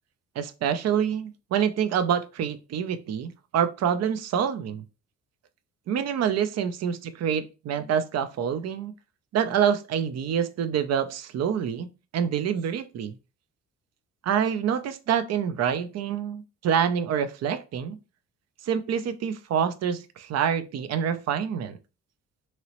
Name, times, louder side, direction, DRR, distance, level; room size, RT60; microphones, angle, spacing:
voice 1, 0.4-4.8 5.9-8.9 9.3-11.9 12.1-13.1 14.2-18.0 18.6-21.8, right 8 dB, 60° right, 0.5 m, -26 dB
3.0 x 2.8 x 2.9 m
cardioid pair, 90°, 30 cm